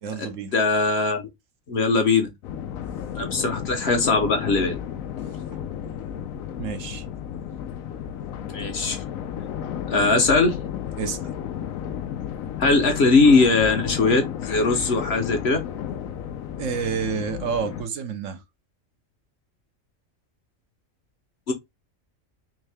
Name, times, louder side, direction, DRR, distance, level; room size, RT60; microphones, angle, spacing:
voice 1, 0.0-0.6 5.5-5.6 6.6-7.0 11.0-11.2 16.6-18.4, right 6 dB, 70° right, 1.1 m, -29 dB
voice 2, 0.5-1.3 1.7-2.3 3.2-4.8 8.5-9.0 9.9-10.6 12.6-15.6 21.5-21.6, left 3 dB, 55° left, 1.1 m, -20 dB
sound 1, 2.4-17.8, left 9 dB, 80° left, 1.0 m, -33 dB
3.7 x 3.2 x 3.3 m
omnidirectional pair, 1.4 m